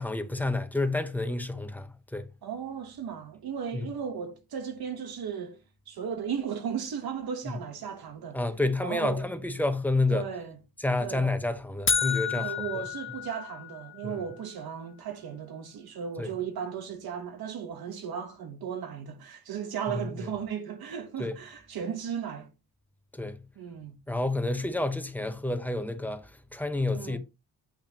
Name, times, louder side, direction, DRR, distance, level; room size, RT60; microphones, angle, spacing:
voice 1, 0.0-2.3 3.7-3.8 8.3-10.2 10.8-12.5 14.0-14.2 16.2-16.3 21.2-21.4 23.1-23.4 24.1-27.2, left 2 dB, 5° left, 0.8 m, -29 dB
voice 2, 2.4-5.6 5.9-8.4 8.8-9.3 10.1-10.6 11.0-11.3 12.4-22.5 23.6-24.0 26.9-27.2, right 7 dB, 85° right, 1.2 m, -36 dB
sound 1, 11.9-14.0, left 7 dB, 35° left, 0.8 m, -30 dB
8.6 x 5.7 x 2.9 m
wide cardioid pair, 125°, 36 cm